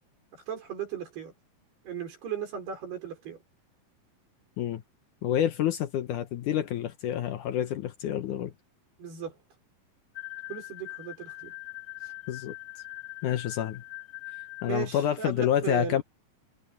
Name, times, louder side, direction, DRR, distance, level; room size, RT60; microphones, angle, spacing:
voice 1, 0.3-1.3 1.9-3.4 9.0-9.4 10.5-11.5 14.6-16.0, right 7 dB, 80° right, 7.7 m, -36 dB
voice 2, 5.2-8.5 12.3-12.5 13.2-13.8 14.6-16.0, left 11 dB, 75° left, 2.0 m, -28 dB
sound 1, 10.1-15.0, left 23 dB, 55° left, 3.3 m, -42 dB
omnidirectional pair, 4.6 m